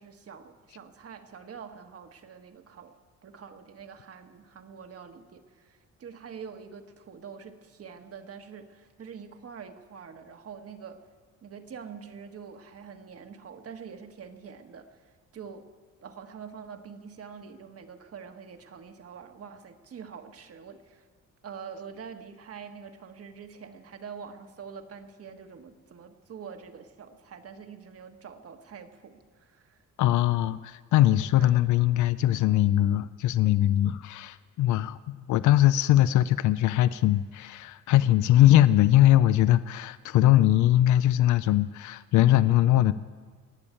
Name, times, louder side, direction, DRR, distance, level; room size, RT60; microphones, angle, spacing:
voice 1, 0.0-2.9 3.2-11.0 11.4-15.6 16.0-21.1 21.4-29.8 31.0-31.6, right 6 dB, 50° right, 6 dB, 1.4 m, -45 dB
voice 2, 30.0-42.9, left 13 dB, 75° left, 15 dB, 0.5 m, -21 dB
19.5 x 7.0 x 8.8 m, 1.6 s
cardioid pair, 90°, 30 cm